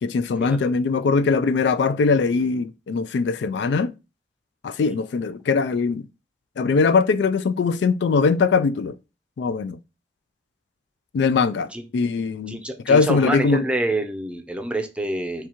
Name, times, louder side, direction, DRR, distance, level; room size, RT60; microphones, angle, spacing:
voice 1, 0.0-3.9 4.6-6.1 6.6-8.9 9.4-9.8 11.1-13.6, left 4 dB, 75° left, 0.3 m, -21 dB
voice 2, 12.5-15.5, right 1 dB, 5° right, 0.6 m, -27 dB
7.0 x 2.4 x 2.9 m
head